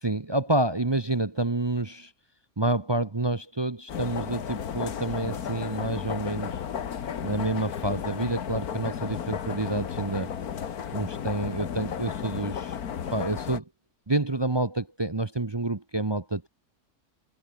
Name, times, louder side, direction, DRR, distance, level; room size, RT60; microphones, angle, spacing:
voice 1, 0.0-2.1 2.6-6.6 7.2-10.3 10.9-12.8 13.1-13.6 14.1-16.5, right 2 dB, 25° right, 0.7 m, -28 dB
sound 1, 3.9-13.6, left 8 dB, 75° left, 1.8 m, -34 dB
omnidirectional pair, 1.6 m